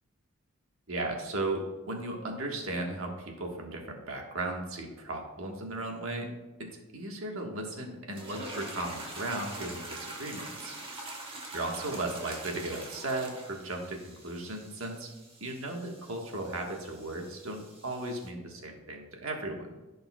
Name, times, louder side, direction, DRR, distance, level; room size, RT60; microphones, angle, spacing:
voice 1, 0.9-10.8 11.5-15.1 15.4-19.7, right 2 dB, 65° right, 1 dB, 1.4 m, -36 dB
sound 1, 8.1-18.3, right 2 dB, 25° right, 1.2 m, -44 dB
15.0 x 5.5 x 2.3 m, 1.1 s
head